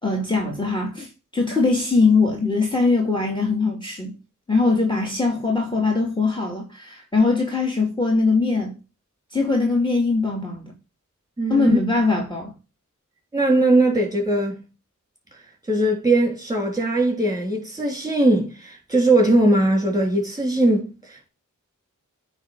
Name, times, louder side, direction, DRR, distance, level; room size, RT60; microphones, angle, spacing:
voice 1, 0.0-4.2 4.5-8.7 9.3-10.7 11.5-12.5, left 3 dB, 15° left, 2.2 m, -21 dB
voice 2, 11.4-11.8 13.3-14.6 15.7-21.3, right 2 dB, 10° right, 3.3 m, -20 dB
9.2 x 3.5 x 6.5 m
wide cardioid pair, 60°, 31 cm